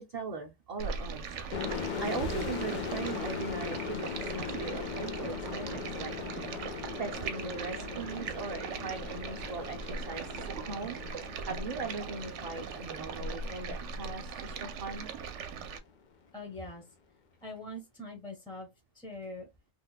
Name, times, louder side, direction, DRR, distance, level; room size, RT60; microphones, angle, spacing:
voice 1, 0.0-1.6 2.0-6.1 7.0-15.1, right 4 dB, 45° right, 0.6 m, -40 dB
Stream, 0.8-15.8, right 5 dB, 80° right, 0.9 m, -40 dB
sound 1, 1.5-15.0, left 7 dB, 55° left, 0.6 m, -40 dB
voice 2, 16.3-16.8 17.4-18.7 18.9-19.5, left 1 dB, 5° left, 0.7 m, -43 dB
2.8 x 2.2 x 3.9 m
omnidirectional pair, 1.2 m